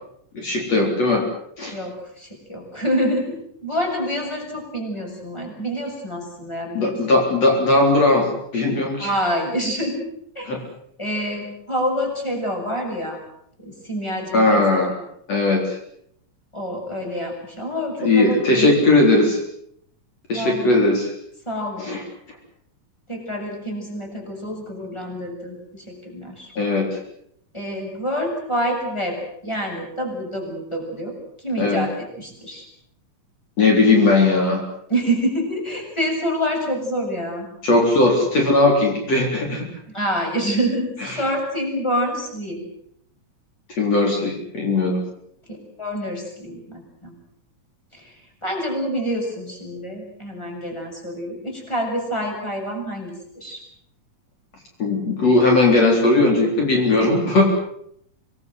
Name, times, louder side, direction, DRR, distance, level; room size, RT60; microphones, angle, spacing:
voice 1, 0.3-1.2 1.6-1.8 6.7-9.1 10.4-10.6 14.3-14.9 15.3-15.8 18.0-19.4 20.3-21.1 21.8-22.0 26.6-27.0 31.6-31.9 33.6-34.6 37.6-39.7 41.0-41.2 43.8-45.0 54.8-57.5, left 2 dB, 50° left, 1 dB, 5.0 m, -18 dB
voice 2, 1.7-7.0 9.0-10.0 10.4-10.6 11.0-13.2 13.6-14.6 16.5-18.8 20.3-20.9 21.5-21.9 23.1-26.5 27.5-29.2 29.4-32.7 34.9-37.5 39.9-42.6 45.5-47.1 47.9-48.1 48.4-53.6, equal, 10° left, 1 dB, 7.2 m, -27 dB
26.0 x 20.5 x 7.9 m, 0.71 s
omnidirectional pair, 3.6 m